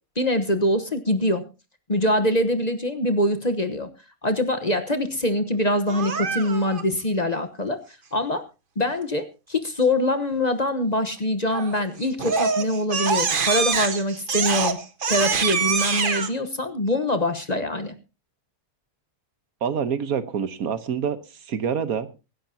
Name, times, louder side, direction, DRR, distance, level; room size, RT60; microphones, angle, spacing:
voice 1, 0.2-1.4 1.9-3.9 4.2-7.8 8.1-8.4 8.8-14.8 15.1-17.9, left 1 dB, 30° left, 9 dB, 1.1 m, -24 dB
Crying sobbing, 5.9-6.8 11.5-11.8 12.2-16.3, right 5 dB, 40° right, 1.1 m, -25 dB
voice 2, 19.6-21.2 21.4-22.1, right 7 dB, 75° right, 12 dB, 1.5 m, -26 dB
24.0 x 10.5 x 2.8 m, 0.29 s
omnidirectional pair, 1.5 m